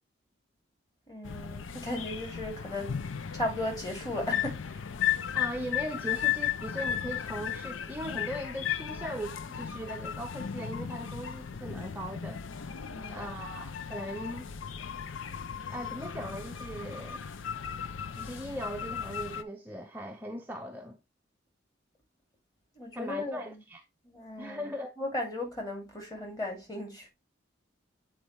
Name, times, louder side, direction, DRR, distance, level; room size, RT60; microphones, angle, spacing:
voice 1, 1.1-3.0 3.3-4.6 12.8-13.3 22.8-23.6 24.1-24.6 25.0-27.1, left 1 dB, 20° left, 2.4 m, -36 dB
sound 1, 1.2-19.4, left 9 dB, 80° left, 0.5 m, -35 dB
voice 2, 5.3-12.4 13.1-14.5 15.7-17.2 18.1-21.0 22.9-23.8 24.4-24.9, equal, 10° right, 0.5 m, -39 dB
8.4 x 4.3 x 3.1 m
head